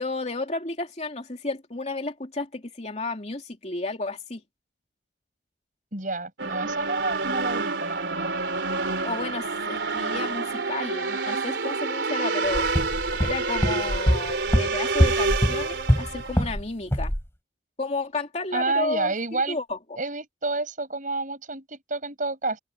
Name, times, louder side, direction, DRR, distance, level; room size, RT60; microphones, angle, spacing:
voice 1, 0.0-4.4 9.0-12.7 13.2-17.1 17.8-19.1 19.5-19.8, left 3 dB, 40° left, 2.9 m, -32 dB
voice 2, 5.9-8.3 18.5-19.6 20.0-22.6, right 3 dB, 45° right, 8.0 m, -29 dB
sound 1, 6.4-16.5, right 3 dB, 80° right, 3.5 m, -28 dB
sound 2, 12.5-16.6 16.9-17.2, equal, 15° left, 4.2 m, -24 dB
open air
head